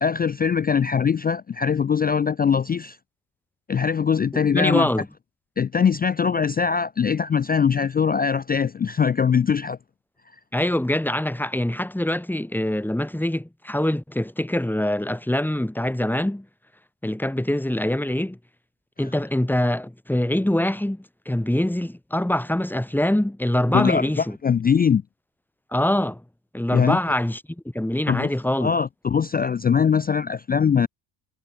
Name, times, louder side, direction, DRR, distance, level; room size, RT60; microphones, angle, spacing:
voice 1, 0.0-3.0 3.7-4.9 5.6-9.8 23.7-25.0 26.7-27.0 28.1-28.3 28.6-30.9, left 6 dB, 20° left, 0.3 m, -21 dB
voice 2, 4.3-5.1 10.5-16.5 17.0-18.4 19.0-24.4 25.7-26.2 26.5-27.4 27.7-28.7, left 1 dB, 5° left, 4.1 m, -24 dB
cardioid pair, 110°, 47 cm